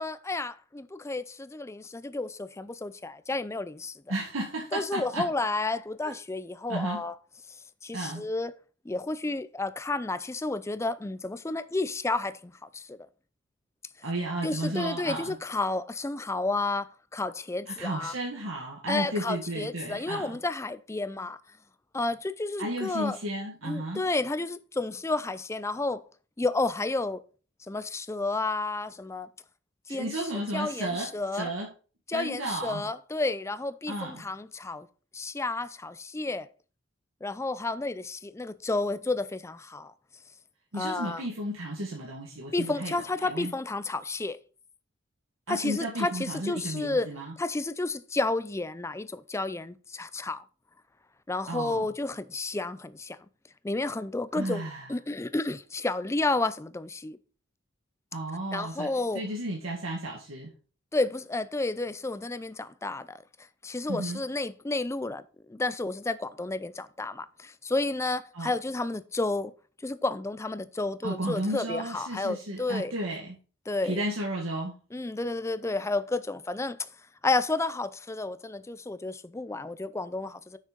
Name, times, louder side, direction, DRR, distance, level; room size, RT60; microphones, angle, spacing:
voice 1, 0.0-4.0 4.7-7.1 7.8-8.5 8.8-13.0 14.4-18.1 18.9-21.4 21.9-23.2 23.6-26.0 26.4-27.2 27.7-29.3 29.9-30.1 30.5-31.5 32.1-34.9 35.1-36.5 37.2-39.9 40.7-41.2 42.5-44.4 45.5-47.1 47.4-50.4 51.3-53.2 53.6-57.2 58.5-59.2 60.9-63.2 63.6-69.5 69.8-72.9 73.7-74.0 74.9-76.9 77.2-80.6, left 2 dB, 15° left, 0.4 m, -31 dB
voice 2, 4.1-5.3 6.7-7.0 7.9-8.2 14.0-15.4 17.7-20.3 22.6-24.0 29.9-31.7 32.1-32.9 33.9-34.2 40.7-42.9 43.2-43.5 45.5-47.3 51.5-51.9 54.3-54.9 58.1-58.9 59.1-60.5 63.9-64.2 68.3-68.5 71.0-73.4 73.8-74.7, right 1 dB, 85° right, 1.8 m, -33 dB
6.5 x 6.2 x 5.1 m
head